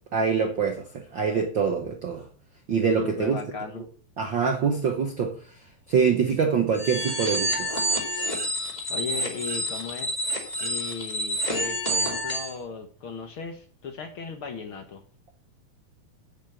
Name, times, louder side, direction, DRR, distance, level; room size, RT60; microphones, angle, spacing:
voice 1, 0.1-2.2 2.7-3.4 4.2-5.3 5.9-7.8, right 6 dB, 80° right, 4 dB, 1.0 m, -24 dB
voice 2, 3.0-3.8 8.9-10.2 10.6-15.0, left 5 dB, 60° left, 5 dB, 1.4 m, -36 dB
sound 1, 6.7-12.5, right 1 dB, 15° left, 2.5 m, -28 dB
9.8 x 5.8 x 7.6 m, 0.43 s
omnidirectional pair, 4.0 m